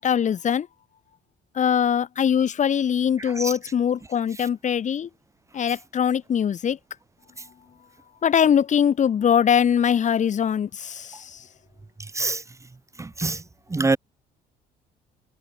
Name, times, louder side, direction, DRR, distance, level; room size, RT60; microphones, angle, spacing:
voice 1, 0.0-0.7 1.5-5.1 5.5-6.8 8.2-11.5, left 8 dB, 45° left, 6.1 m, -22 dB
voice 2, 13.0-13.4 13.7-14.0, right 3 dB, 15° right, 3.4 m, -24 dB
cardioid pair, 110°, 17 cm